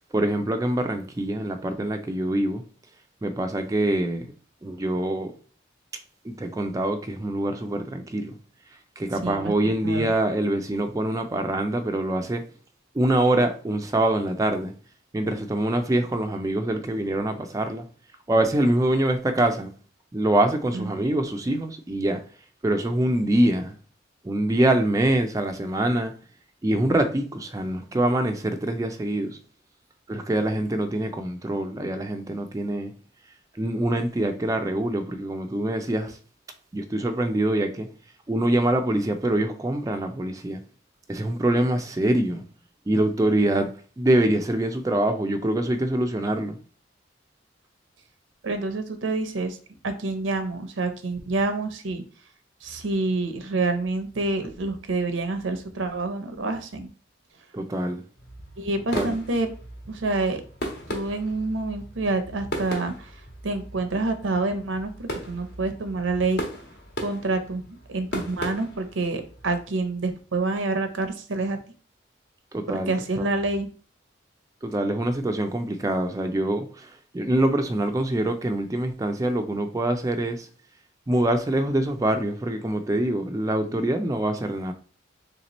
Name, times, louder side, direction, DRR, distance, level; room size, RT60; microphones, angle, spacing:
voice 1, 0.0-2.6 3.2-4.3 4.6-5.3 6.2-8.4 9.0-12.4 12.9-14.7 15.1-17.8 18.3-19.7 20.1-22.2 22.6-23.7 24.2-26.1 26.6-29.4 30.1-32.9 33.6-36.2 36.7-37.9 38.3-40.6 41.1-42.4 42.9-43.7 44.0-46.6 57.5-58.0 58.9-59.1 72.5-73.3 74.6-80.5 81.1-84.7, right 1 dB, 20° right, 0.3 m, -24 dB
voice 2, 9.2-9.5 9.8-10.1 20.7-21.0 48.4-49.6 49.8-52.0 52.6-56.9 58.6-59.5 59.9-60.4 60.9-63.1 63.4-66.4 67.0-71.6 72.7-73.7, right 3 dB, 85° right, 0.7 m, -27 dB
sound 1, 58.2-69.6, equal, 60° left, 1.2 m, -37 dB
3.2 x 2.9 x 4.0 m
head